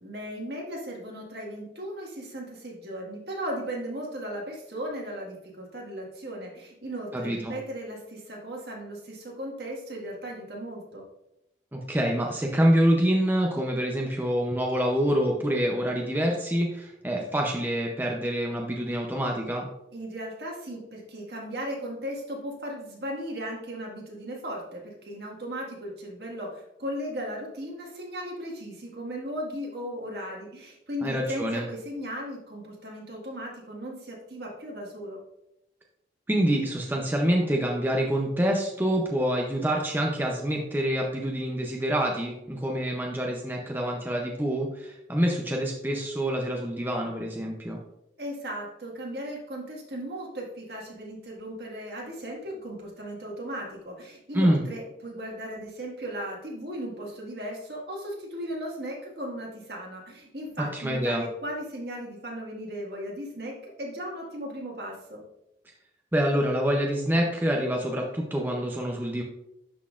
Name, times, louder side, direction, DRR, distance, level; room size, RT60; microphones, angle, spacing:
voice 1, 0.0-11.1 19.9-35.2 48.2-65.2, equal, 60° right, -2 dB, 1.8 m, -36 dB
voice 2, 7.1-7.5 11.7-19.7 31.0-31.7 36.3-47.8 54.3-54.6 60.7-61.2 66.1-69.2, equal, 10° right, 0 dB, 0.6 m, -26 dB
11.5 x 4.1 x 2.5 m, 0.84 s
head